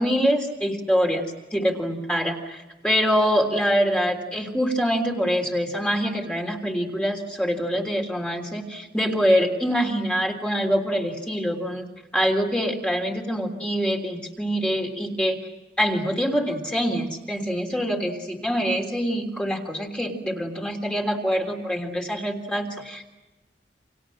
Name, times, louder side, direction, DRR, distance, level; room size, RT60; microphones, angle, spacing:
voice 1, 0.0-11.9 12.1-15.4 15.8-23.1, equal, 5° left, 1 dB, 3.4 m, -25 dB
29.5 x 27.5 x 6.5 m, 1.1 s
head